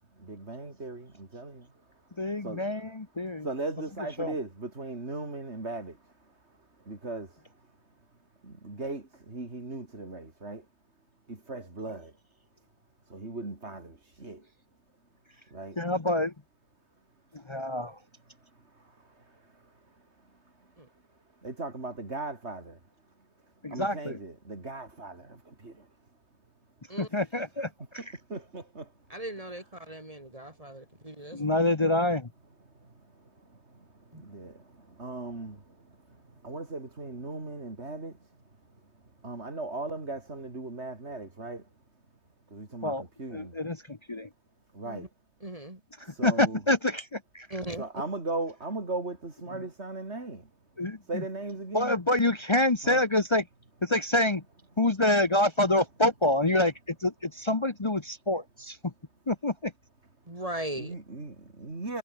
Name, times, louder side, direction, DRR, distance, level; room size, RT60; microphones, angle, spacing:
voice 1, 0.2-1.7 2.2-2.6 3.2-7.6 8.4-10.7 11.3-12.2 13.1-14.5 15.5-15.8 18.4-20.8 21.4-22.8 23.7-25.9 28.0-28.9 32.7-38.4 38.7-38.8 39.2-41.7 42.5-43.6 44.7-45.1 46.0-46.6 47.8-50.5 51.0-52.0 52.8-53.0 60.8-62.0, right 2 dB, 85° right, 4.1 m, -39 dB
voice 2, 2.2-3.5 4.2-4.3 15.8-16.3 17.3-18.0 23.6-24.2 27.0-27.7 31.3-32.3 42.8-43.0 43.3-44.3 46.2-47.5 50.8-51.2 51.7-53.5 53.8-54.4 54.8-58.9 59.3-59.7, left 1 dB, 25° left, 1.2 m, -27 dB
voice 3, 29.1-31.5 34.1-34.2 44.8-45.1 45.4-45.8 47.5-47.8 60.3-60.9, right 1 dB, 35° right, 3.7 m, -38 dB
omnidirectional pair, 1.1 m